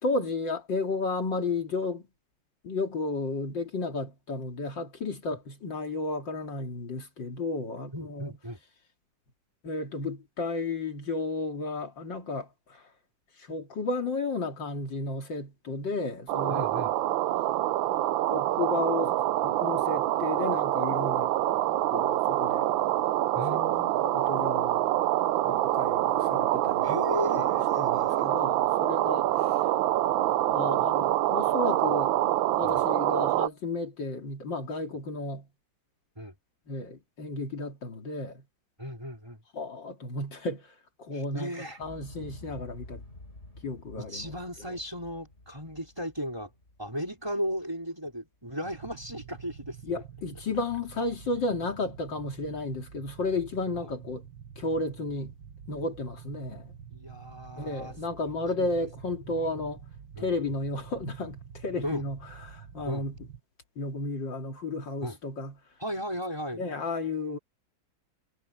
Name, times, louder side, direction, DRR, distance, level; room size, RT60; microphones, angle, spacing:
voice 1, 0.0-2.1 2.6-8.3 9.6-12.9 13.4-16.6 18.3-19.2 19.4-21.3 21.9-22.7 23.5-23.6 24.1-24.9 25.4-27.1 27.3-27.5 27.8-29.6 30.5-32.2 32.6-35.5 36.7-38.4 39.5-41.5 41.8-43.0 43.6-44.3 49.8-54.2 54.6-55.4 55.7-56.8 57.6-59.8 60.2-63.2 63.8-65.5 66.5-67.4, left 2 dB, 65° left, 3.1 m, -33 dB
voice 2, 7.9-8.6 16.5-16.9 23.3-23.9 26.8-28.4 32.6-32.8 36.1-36.4 38.8-39.4 41.1-41.8 44.0-46.5 46.8-50.0 53.8-53.9 56.9-57.9 58.2-58.3 58.6-58.9 59.2-59.7 60.2-60.3 61.8-62.0 62.8-63.1 65.0-65.2 65.8-66.6, equal, 10° right, 4.8 m, -36 dB
sound 1, 16.3-33.5, right 14 dB, 80° right, 1.4 m, -26 dB
Explosion, 41.8-47.8 48.1-48.2, left 2 dB, 35° left, 4.6 m, -49 dB
sound 2, 48.6-63.4, right 8 dB, 60° right, 2.0 m, -47 dB
omnidirectional pair, 2.2 m